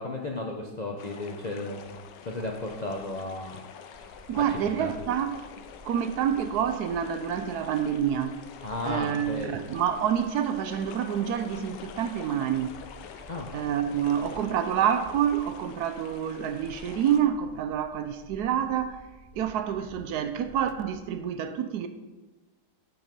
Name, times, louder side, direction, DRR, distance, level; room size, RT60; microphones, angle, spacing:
voice 1, 0.0-2.0 2.2-3.6 4.0-4.9 8.6-9.6 13.3-13.5 14.3-14.4, left 2 dB, 60° left, 0.4 m, -34 dB
sound 1, 1.0-17.2, left 7 dB, 85° left, 1.3 m, -47 dB
sound 2, 3.9-21.2, equal, 5° left, 1.5 m, -52 dB
voice 2, 4.3-5.4 5.8-8.4 8.8-12.7 13.5-19.0 19.3-21.9, right 9 dB, 75° right, 1.1 m, -28 dB
8.7 x 5.5 x 5.3 m
omnidirectional pair, 1.9 m